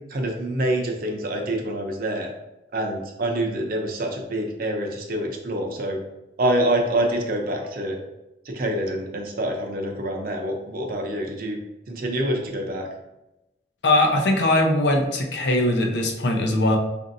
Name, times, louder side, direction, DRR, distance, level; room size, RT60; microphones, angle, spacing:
voice 1, 0.1-2.3 2.7-6.0 6.4-8.0 8.5-11.6 11.9-12.9, right 1 dB, 55° right, 2 dB, 0.6 m, -26 dB
voice 2, 13.8-16.8, left 1 dB, 70° left, 2 dB, 0.6 m, -20 dB
4.9 x 2.5 x 2.6 m, 0.96 s
head